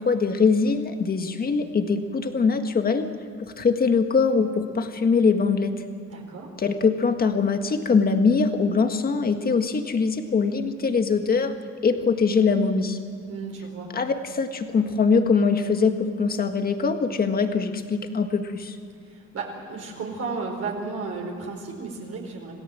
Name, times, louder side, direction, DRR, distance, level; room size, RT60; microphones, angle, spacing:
voice 1, 0.0-3.1 3.4-5.7 6.6-11.5 11.8-13.0 13.9-18.8, left 5 dB, 30° left, 6 dB, 1.7 m, -22 dB
voice 2, 6.1-6.5 13.3-13.9 19.0-22.5, right 4 dB, 50° right, 0 dB, 4.5 m, -33 dB
27.5 x 18.0 x 7.7 m, 2.3 s
cardioid pair, 160°, 30 cm